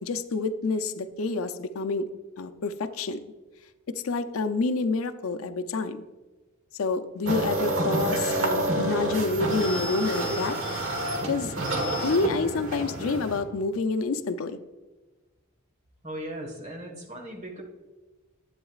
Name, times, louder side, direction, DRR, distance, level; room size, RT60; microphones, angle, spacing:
voice 1, 0.0-2.1 2.4-3.2 4.0-6.0 6.8-10.6 11.3-11.5 12.0-14.6, left 3 dB, 90° left, 9 dB, 0.5 m, -28 dB
sound 1, 7.3-13.4, right 1 dB, 65° right, 1.4 m, -28 dB
voice 2, 16.0-17.6, right 1 dB, 35° right, 1 dB, 1.4 m, -38 dB
11.0 x 8.7 x 2.4 m, 1.2 s
head